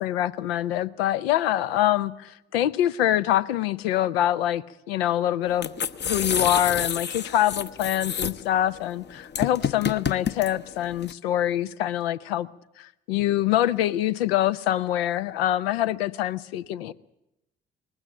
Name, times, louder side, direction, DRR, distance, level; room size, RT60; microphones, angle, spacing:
voice 1, 0.0-5.7 6.0-12.5 12.8-16.9, left 12 dB, 75° left, 0.6 m, -25 dB
sound 1, 5.5-11.1, left 7 dB, 35° left, 0.8 m, -29 dB
20.0 x 16.0 x 8.8 m
figure-of-eight pair, 40°, 31 cm